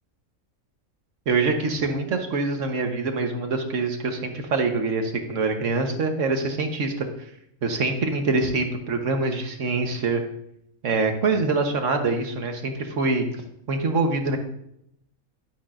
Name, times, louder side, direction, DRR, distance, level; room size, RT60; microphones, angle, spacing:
voice 1, 1.3-7.1 7.6-10.2 10.8-13.3 13.7-14.4, right 3 dB, 60° right, 5 dB, 1.4 m, -24 dB
11.0 x 9.8 x 2.5 m, 0.75 s
omnidirectional pair, 1.5 m